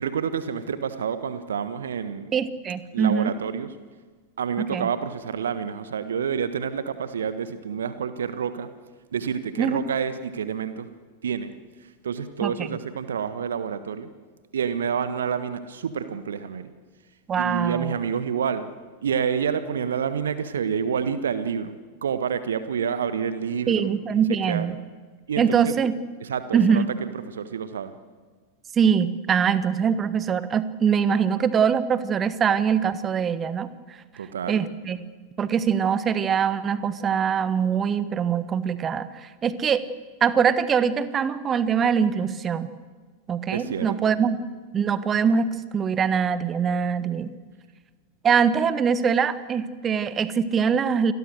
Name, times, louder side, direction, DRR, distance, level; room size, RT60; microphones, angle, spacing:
voice 1, 0.0-2.3 2.9-3.7 4.4-8.7 9.1-10.9 11.2-11.5 11.8-14.1 14.5-16.7 17.4-18.7 19.0-21.8 22.0-23.9 24.5-24.7 25.3-25.7 26.2-27.9 34.2-34.7 43.5-44.1, right 7 dB, 65° right, 12 dB, 1.4 m, -28 dB
voice 2, 2.3-3.3 4.6-4.9 9.6-9.8 12.4-12.5 17.3-18.0 23.7-24.8 25.4-26.0 26.5-26.9 28.8-33.7 34.5-35.0 35.4-39.8 40.2-42.7 43.3-44.4 44.7-47.3 48.2-51.1, right 7 dB, 25° right, 14 dB, 1.3 m, -23 dB
28.5 x 22.0 x 6.6 m, 1.5 s
figure-of-eight pair, 90°, 0 cm